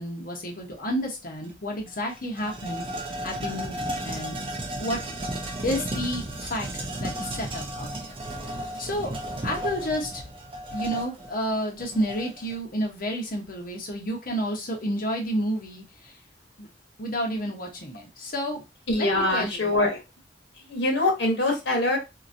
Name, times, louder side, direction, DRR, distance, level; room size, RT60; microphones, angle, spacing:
voice 1, 0.0-2.8 3.2-4.4 4.8-5.0 5.6-8.2 8.8-9.1 9.4-10.2 10.7-16.1 16.6-16.7 17.0-18.6 19.0-19.8, equal, 50° left, 0 dB, 1.0 m, -30 dB
sound 1, 1.4-1.5 1.9-12.6, right 1 dB, 30° right, 0.6 m, -34 dB
voice 2, 18.9-20.0 20.7-22.0, left 2 dB, 75° left, 2 dB, 1.1 m, -23 dB
2.9 x 2.6 x 2.5 m, 0.26 s
head